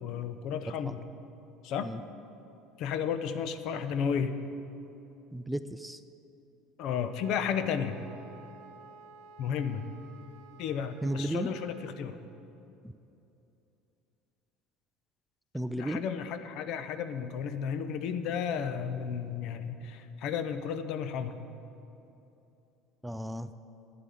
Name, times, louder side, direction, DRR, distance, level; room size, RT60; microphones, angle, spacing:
voice 1, 0.0-1.0 1.6-1.9 2.8-4.4 6.8-8.0 9.4-9.8 10.6-12.2 15.8-21.4, left 7 dB, 65° left, 10 dB, 0.8 m, -33 dB
voice 2, 5.3-6.0 11.0-11.5 15.5-16.0 23.0-23.5, right 1 dB, 5° right, 11 dB, 0.5 m, -33 dB
Wind instrument woodwind instrument, 7.1-12.0, right 4 dB, 75° right, 1.0 m, -53 dB
9.7 x 8.1 x 9.3 m, 2.8 s
supercardioid pair, 100°, 0 cm